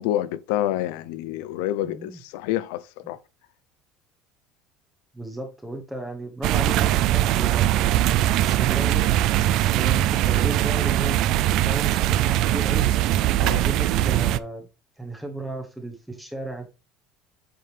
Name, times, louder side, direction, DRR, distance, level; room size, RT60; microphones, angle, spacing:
voice 1, 0.0-3.2 13.4-13.6, left 13 dB, 85° left, 0.5 m, -28 dB
voice 2, 1.8-2.2 5.1-7.7 8.4-12.8 13.5-14.7 15.0-16.7, right 1 dB, 5° right, 0.9 m, -35 dB
sound 1, 6.4-14.4, right 13 dB, 45° right, 0.3 m, -21 dB
7.9 x 4.7 x 3.3 m
cardioid pair, 180°, 0 cm